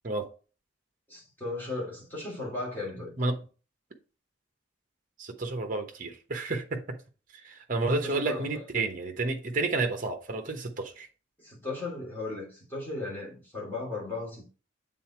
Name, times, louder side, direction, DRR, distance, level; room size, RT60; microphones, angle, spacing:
voice 1, 1.1-3.1 8.0-8.6 11.4-14.5, left 2 dB, 10° left, 3.0 m, -36 dB
voice 2, 5.2-7.0 7.4-11.1, right 3 dB, 40° right, 0.9 m, -30 dB
7.8 x 3.8 x 4.4 m
head